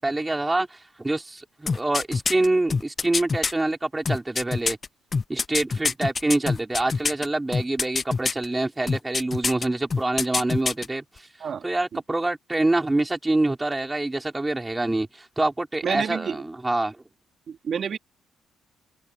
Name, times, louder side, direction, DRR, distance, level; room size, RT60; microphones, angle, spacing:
voice 1, 0.0-4.8 5.3-11.3 11.6-17.0, right 2 dB, 15° right, 5.2 m, -26 dB
sound 1, 1.7-3.5 4.0-7.3 7.5-8.4 8.9-9.6 9.9-10.9 11.2-11.3, left 4 dB, 35° left, 0.5 m, -25 dB
voice 2, 15.8-16.4 17.5-18.0, right 7 dB, 55° right, 3.3 m, -29 dB
cardioid pair, 90°, 0 cm